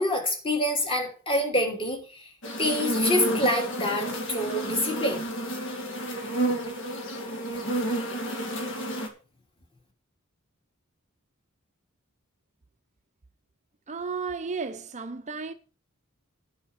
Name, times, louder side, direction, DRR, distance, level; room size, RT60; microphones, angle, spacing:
voice 1, 0.0-2.3 2.6-5.2 7.5-7.8, left 1 dB, 25° left, 3.2 m, -27 dB
sound 1, 2.4-9.1, right 1 dB, 60° left, 2.5 m, -30 dB
voice 2, 13.9-15.5, right 4 dB, 35° right, 0.6 m, -33 dB
9.9 x 5.8 x 8.2 m
head